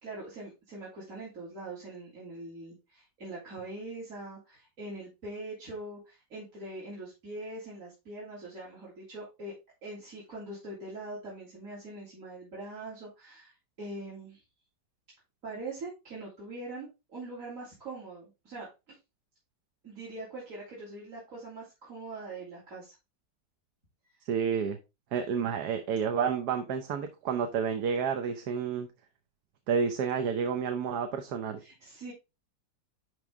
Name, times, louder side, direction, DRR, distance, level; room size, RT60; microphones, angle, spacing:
voice 1, 0.0-9.5 9.8-13.5 13.8-14.4 15.4-19.0 19.8-22.9 31.6-32.1, right 2 dB, 45° right, 3.4 m, -42 dB
voice 2, 24.3-24.8 25.1-28.9 29.7-31.6, right 6 dB, 65° right, 1.4 m, -30 dB
11.0 x 3.8 x 3.5 m
omnidirectional pair, 1.9 m